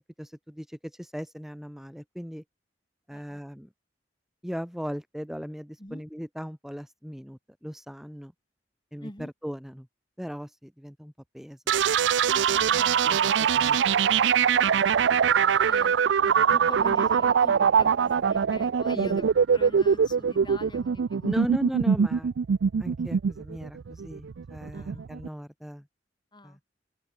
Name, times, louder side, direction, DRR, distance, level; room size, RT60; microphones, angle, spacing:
voice 1, 0.2-2.4 3.1-3.7 4.4-8.3 8.9-9.1 9.4-9.9 10.2-11.6 11.8-11.9 13.0-14.2 18.9-19.3 21.2-22.3 22.8-25.9 26.4-26.6, equal, ahead, 3.3 m, -38 dB
voice 2, 3.1-3.4 5.8-6.0 9.0-9.3 12.3-13.8 15.1-16.0 16.2-19.3 19.5-21.5 24.7-25.1 26.3-26.7, left 1 dB, 25° left, 5.3 m, -44 dB
sound 1, 11.7-25.3, right 7 dB, 85° right, 0.4 m, -23 dB
open air
head